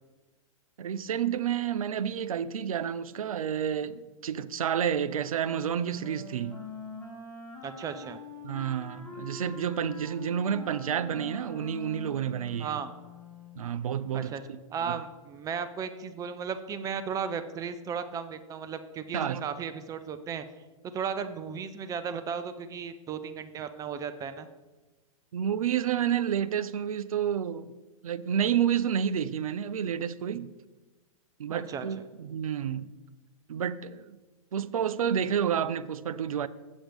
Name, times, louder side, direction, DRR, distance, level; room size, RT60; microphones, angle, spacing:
voice 1, 0.8-6.6 8.4-12.8 13.5-14.4 14.8-15.0 19.1-19.4 25.3-27.7 28.0-30.5 31.4-32.9 33.5-34.2 34.5-36.5, right 8 dB, 80° right, 0.5 m, -30 dB
Wind instrument woodwind instrument, 5.4-13.6, left 4 dB, 10° left, 1.8 m, -44 dB
voice 2, 7.6-8.2 12.6-12.9 14.1-14.4 14.7-20.5 20.8-24.5 31.5-31.9, right 6 dB, 20° right, 0.6 m, -35 dB
7.2 x 7.1 x 5.2 m
hypercardioid pair, 120°, 18 cm